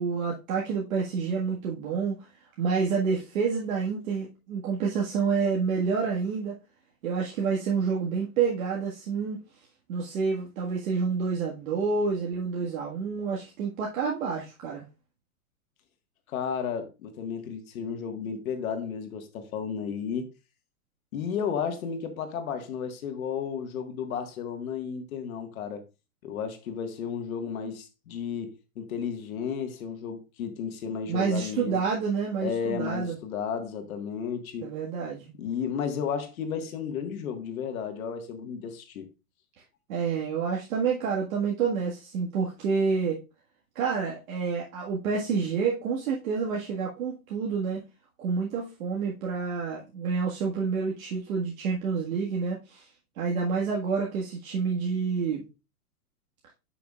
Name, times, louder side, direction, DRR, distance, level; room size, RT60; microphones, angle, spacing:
voice 1, 0.0-2.2 2.6-6.5 7.0-9.4 9.9-14.9 31.1-33.2 34.6-35.3 39.9-43.2 43.8-47.8 48.2-52.9 53.2-55.5, right 5 dB, 65° right, 1.8 m, -28 dB
voice 2, 16.3-20.3 21.1-25.8 26.2-31.8 32.4-34.7 35.4-39.1, left 7 dB, 70° left, 1.6 m, -33 dB
9.3 x 6.0 x 2.4 m
hypercardioid pair, 150°, 43 cm